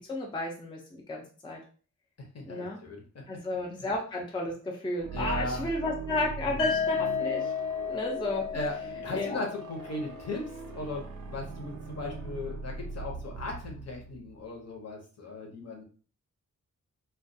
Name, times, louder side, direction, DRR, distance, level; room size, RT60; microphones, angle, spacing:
voice 1, 0.1-1.6 2.5-2.8 3.3-7.5 7.9-8.4 9.1-9.4, left 2 dB, 15° left, -1 dB, 0.4 m, -33 dB
voice 2, 2.2-3.4 5.1-5.7 6.4-6.7 8.5-8.8 9.0-15.8, left 2 dB, 55° left, 0 dB, 0.8 m, -37 dB
sound 1, 4.9-14.7, right 5 dB, 75° right, 0.4 m, -41 dB
sound 2, 6.6-10.5, left 7 dB, 90° left, 0.8 m, -33 dB
2.2 x 2.2 x 2.6 m, 0.39 s
wide cardioid pair, 145°, 31 cm